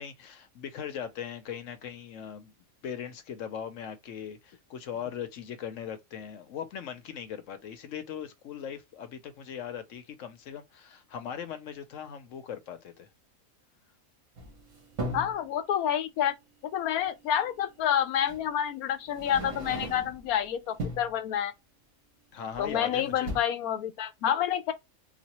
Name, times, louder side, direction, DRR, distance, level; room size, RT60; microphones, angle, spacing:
voice 1, 0.0-2.5 2.8-13.1 22.3-23.3, left 8 dB, 65° left, 0.9 m, -39 dB
sound 1, 14.4-15.4 17.1-17.2 18.3-18.5 19.1-20.3 20.7-21.2 22.5-22.9 23.1-23.4, right 1 dB, 60° right, 1.7 m, -37 dB
voice 2, 15.1-16.3 16.7-21.5 22.6-24.7, left 10 dB, 85° left, 1.2 m, -28 dB
4.1 x 2.3 x 2.9 m
omnidirectional pair, 1.5 m